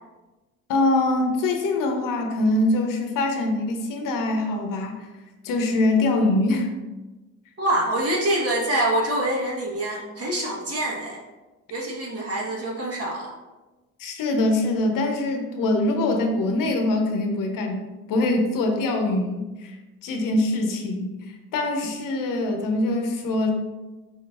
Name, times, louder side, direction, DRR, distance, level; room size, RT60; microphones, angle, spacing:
voice 1, 0.7-5.1 5.4-6.7 14.0-19.8 20.0-21.2 21.5-23.5, left 2 dB, 60° left, 3 dB, 0.9 m, -23 dB
voice 2, 7.6-11.2 11.7-13.3, right 1 dB, 40° right, -2 dB, 1.4 m, -25 dB
4.5 x 4.0 x 2.5 m, 1.1 s
hypercardioid pair, 50°, 37 cm